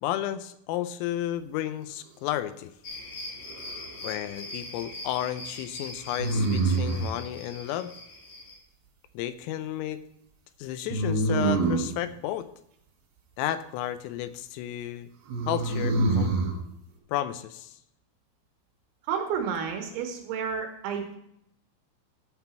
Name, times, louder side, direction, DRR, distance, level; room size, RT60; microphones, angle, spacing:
voice 1, 0.0-2.7 4.0-7.9 9.1-10.0 10.6-12.5 13.4-15.1 15.5-16.3 17.1-17.8, left 12 dB, 90° left, 12 dB, 3.3 m, -32 dB
sound 1, 2.8-8.6, left 2 dB, 55° left, 2.2 m, -41 dB
sound 2, 3.4-4.1 6.2-7.1 10.9-12.0 15.3-16.5, right 3 dB, 60° right, 3.7 m, -26 dB
voice 2, 19.1-21.2, right 7 dB, 75° right, 3 dB, 3.2 m, -31 dB
12.5 x 6.0 x 4.4 m, 0.76 s
omnidirectional pair, 5.8 m